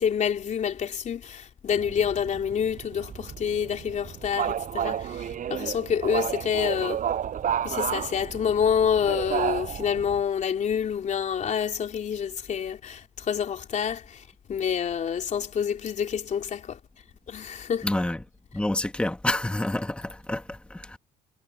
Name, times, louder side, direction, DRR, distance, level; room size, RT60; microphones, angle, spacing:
voice 1, 0.0-7.0 7.6-14.2 14.5-16.8 17.3-17.9, left 8 dB, 45° left, 3.4 m, -27 dB
sound 1, 1.7-10.2, right 9 dB, 50° right, 7.4 m, -31 dB
voice 2, 17.8-18.2 18.5-21.0, left 1 dB, 5° left, 2.0 m, -28 dB
cardioid pair, 110°, 17 cm